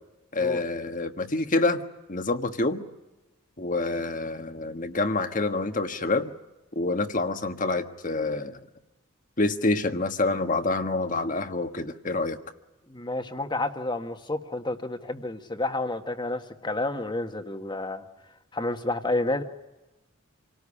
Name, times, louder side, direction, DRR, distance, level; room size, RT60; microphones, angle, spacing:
voice 1, 0.3-1.8 2.1-2.8 3.6-6.3 6.7-8.6 9.4-12.4, left 2 dB, 40° left, 8 dB, 1.4 m, -27 dB
voice 2, 12.9-18.0 18.5-19.4, left 2 dB, 20° left, 7 dB, 1.6 m, -30 dB
27.5 x 19.0 x 9.9 m, 1.1 s
head